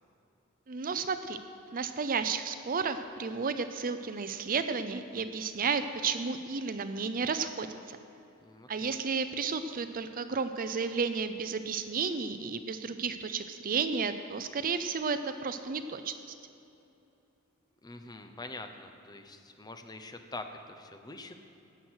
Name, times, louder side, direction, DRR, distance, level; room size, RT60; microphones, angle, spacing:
voice 1, 0.7-1.4 1.7-8.0 8.7-16.1, right 5 dB, 40° right, 10 dB, 0.6 m, -32 dB
voice 2, 8.4-9.0 17.8-21.3, left 2 dB, 20° left, 6 dB, 0.8 m, -45 dB
16.5 x 7.7 x 6.4 m, 2.8 s
head